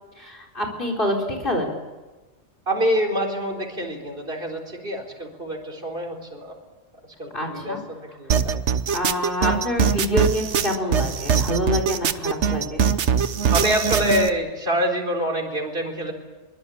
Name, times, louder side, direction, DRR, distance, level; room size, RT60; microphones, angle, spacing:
voice 1, 0.2-1.8 7.3-7.8 8.9-12.8, left 1 dB, 45° left, 3 dB, 4.6 m, -26 dB
voice 2, 2.7-6.5 7.0-8.6 9.4-9.6 13.5-16.1, equal, 50° right, 2 dB, 4.5 m, -26 dB
sound 1, 8.3-14.3, right 6 dB, 70° right, 1.3 m, -22 dB
23.5 x 22.5 x 8.6 m, 1.2 s
omnidirectional pair, 1.2 m